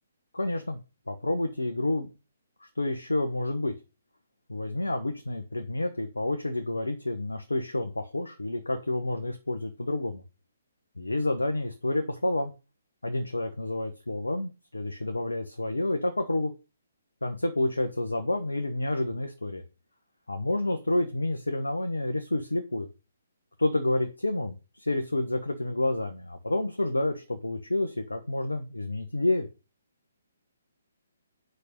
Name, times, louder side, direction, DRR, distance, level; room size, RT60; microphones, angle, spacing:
voice 1, 0.3-0.8 1.1-2.1 2.6-3.7 4.5-10.2 11.0-12.5 13.0-16.5 17.2-19.6 20.3-22.9 23.6-29.5, left 2 dB, 80° left, 6 dB, 1.2 m, -29 dB
6.5 x 5.3 x 6.5 m, 0.30 s
figure-of-eight pair, 135°, 0 cm